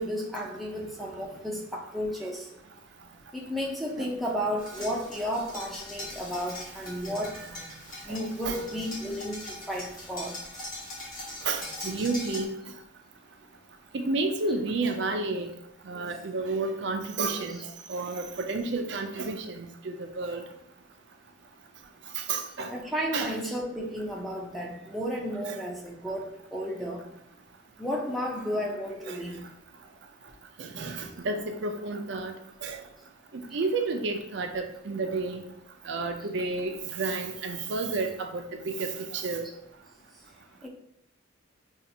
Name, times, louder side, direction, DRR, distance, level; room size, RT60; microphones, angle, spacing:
voice 1, 0.0-2.5 3.3-7.4 8.0-10.4 22.7-27.1 27.8-29.5 33.5-33.6 40.6-40.7, equal, ahead, -2 dB, 0.5 m, -33 dB
sound 1, 4.6-12.5, left 2 dB, 45° left, 1.3 m, -41 dB
voice 2, 11.4-12.5 13.9-15.5 15.9-17.6 17.9-20.4 22.2-22.7 23.1-23.3 25.5-25.6 29.1-29.2 30.6-32.3 32.6-32.8 33.3-35.4 35.8-39.4, right 3 dB, 70° right, 4 dB, 0.5 m, -31 dB
5.5 x 2.5 x 2.7 m, 0.77 s
head